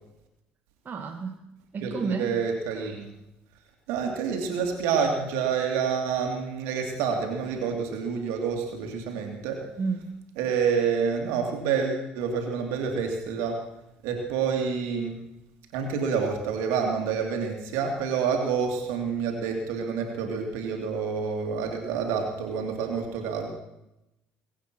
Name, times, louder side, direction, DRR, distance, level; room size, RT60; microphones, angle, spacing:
voice 1, 0.9-1.4 1.7-2.3 9.8-10.1, right 5 dB, 40° right, 1 dB, 2.0 m, -31 dB
voice 2, 1.8-3.1 3.9-9.6 10.4-13.6 14.0-15.2 15.7-23.5, right 6 dB, 70° right, 2 dB, 2.6 m, -28 dB
22.0 x 8.6 x 6.1 m, 0.90 s
hypercardioid pair, 60°, 5 cm